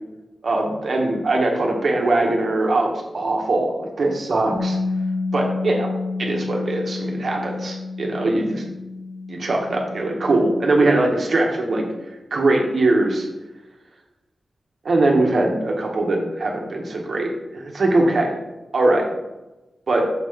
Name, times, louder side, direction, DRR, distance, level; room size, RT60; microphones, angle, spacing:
voice 1, 0.4-4.8 5.3-5.9 6.2-8.6 9.3-11.8 12.3-13.3 14.8-18.3 18.7-19.1 19.9-20.0, right 2 dB, 55° right, 0 dB, 1.2 m, -21 dB
Bass guitar, 4.6-10.8, left 3 dB, 20° left, 1.1 m, -29 dB
6.5 x 5.0 x 3.7 m, 1.0 s
wide cardioid pair, 150°, 0 cm